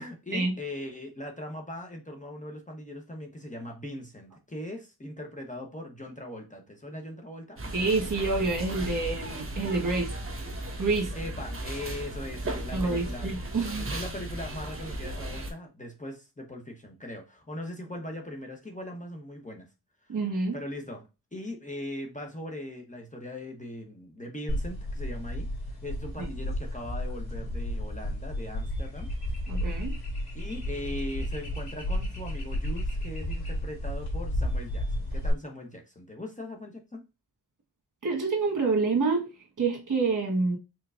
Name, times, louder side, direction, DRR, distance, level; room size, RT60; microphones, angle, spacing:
voice 1, 0.0-7.6 11.1-13.3 13.7-19.7 20.1-20.2 20.5-29.1 29.6-29.7 30.3-37.0, left 1 dB, 20° left, 1.0 m, -40 dB
sound 1, 7.6-15.5, right 1 dB, 35° right, 1.3 m, -36 dB
voice 2, 7.7-10.1 10.8-11.1 12.7-13.8 20.1-20.6 26.2-26.3 29.5-29.9 38.0-40.6, right 3 dB, 50° right, 1.6 m, -27 dB
sound 2, 24.5-35.3, left 1 dB, 70° left, 2.3 m, -32 dB
4.5 x 3.8 x 2.5 m
cardioid pair, 75°, 40 cm